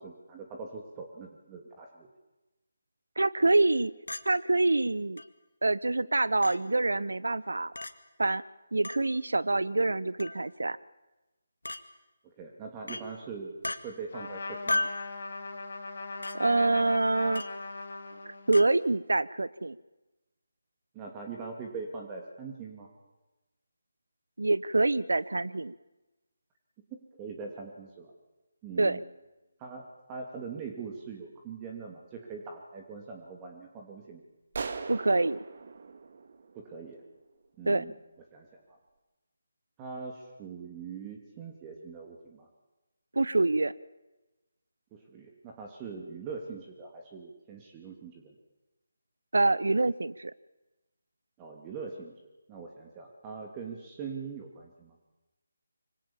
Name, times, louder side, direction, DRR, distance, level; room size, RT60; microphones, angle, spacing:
voice 1, 0.0-2.1 12.4-13.6 13.8-14.9 20.9-22.9 26.9-28.1 28.6-29.0 29.6-34.2 36.5-37.0 37.6-37.9 38.3-38.8 39.8-42.5 44.9-48.3 51.4-52.1 52.5-55.0, right 5 dB, 20° right, 1 dB, 2.7 m, -42 dB
voice 2, 3.2-3.9 4.2-5.2 5.6-7.7 8.2-8.4 8.7-10.8 16.3-17.4 18.3-19.8 24.4-25.7 28.8-29.0 34.9-35.4 37.7-37.8 43.1-43.7 49.3-50.3, right 2 dB, 75° right, 17 dB, 1.0 m, -26 dB
Chink clink, 4.1-4.3 5.2-5.3 6.4-6.6 7.8-7.9 8.8-9.0 10.2-10.4 11.6-11.8 12.9-13.1 13.6-13.8 14.7-15.0 16.2-16.4 17.3-17.6 18.5-18.7, left 2 dB, 80° left, 2.0 m, -33 dB
Trumpet, 14.1-18.7, left 3 dB, 50° left, 4.0 m, -40 dB
sound 1, 34.5-37.1, right 4 dB, 50° right, 2.0 m, -40 dB
26.0 x 25.0 x 7.3 m, 1.1 s
figure-of-eight pair, 155°, 0 cm